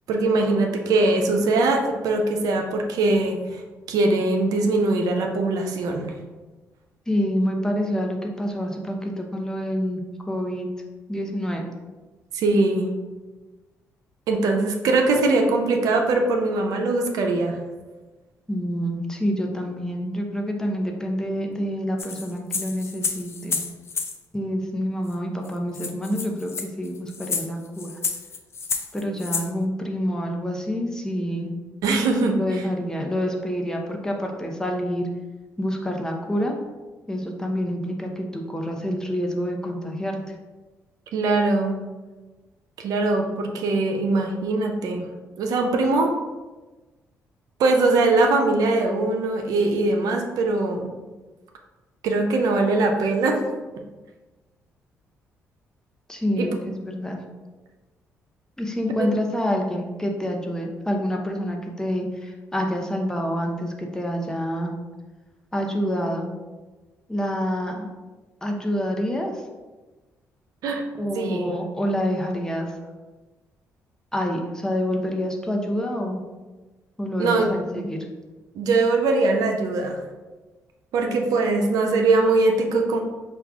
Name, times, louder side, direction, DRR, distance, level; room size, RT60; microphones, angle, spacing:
voice 1, 0.1-3.6 3.9-6.1 12.3-12.9 14.3-17.6 31.8-32.6 41.1-41.8 42.8-45.1 45.4-46.1 47.6-50.9 52.0-53.4 56.4-56.5 59.0-59.1 70.6-70.8 71.1-71.6 77.2-77.5 77.7-77.8 78.5-80.0 80.9-83.0, right 3 dB, 75° right, 3 dB, 0.5 m, -21 dB
voice 2, 7.1-10.0 10.3-10.7 11.1-11.7 18.5-23.6 24.3-28.0 28.9-31.5 32.3-35.1 35.6-36.6 37.1-40.2 56.1-57.2 58.6-64.7 65.5-66.3 67.1-67.9 68.4-69.3 70.9-72.7 74.1-76.2 77.0-78.0, equal, 10° left, 1 dB, 0.7 m, -27 dB
sound 1, 22.0-24.2 25.1-25.2 25.4-25.5 25.7-29.5, left 5 dB, 45° left, 0.5 m, -30 dB
4.8 x 2.4 x 3.5 m, 1.2 s
supercardioid pair, 70°, 6 cm